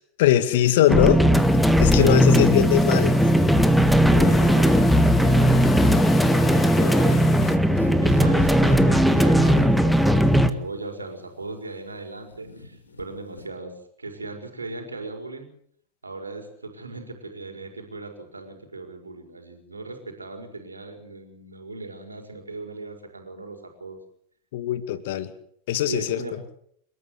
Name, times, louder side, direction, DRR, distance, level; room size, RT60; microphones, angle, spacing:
voice 1, 0.2-1.2 1.8-3.2 24.5-25.3 25.7-26.2, left 12 dB, 55° left, 12 dB, 2.2 m, -21 dB
sound 1, 0.9-10.5, equal, ahead, 1.8 m, -18 dB
sound 2, 1.3-7.6, left 3 dB, 15° left, 3.0 m, -33 dB
voice 2, 1.9-2.5 4.0-13.7 14.0-15.5 16.0-24.0 25.8-26.3, right 3 dB, 80° right, 4 dB, 4.9 m, -38 dB
sound 3, 7.1-9.6 10.6-10.7 11.4-11.5 12.3-13.0 13.3-13.5, left 3 dB, 75° left, 4.0 m, -35 dB
29.0 x 14.0 x 8.2 m, 0.68 s
figure-of-eight pair, 90°, 0 cm